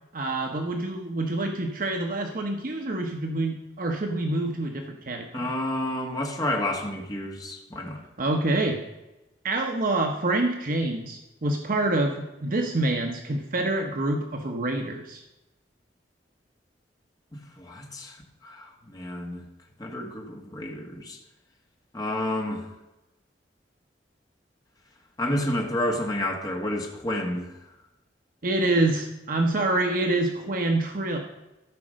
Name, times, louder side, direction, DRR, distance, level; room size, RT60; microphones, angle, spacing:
voice 1, 0.1-5.5 8.2-8.8 9.4-15.2 28.4-31.2, right 2 dB, 50° right, 3 dB, 1.0 m, -26 dB
voice 2, 5.3-8.0 17.6-18.1 18.4-19.4 19.8-21.2 21.9-22.6 25.2-27.5, left 1 dB, 20° left, 0 dB, 1.4 m, -30 dB
13.0 x 4.9 x 6.3 m, 0.99 s
head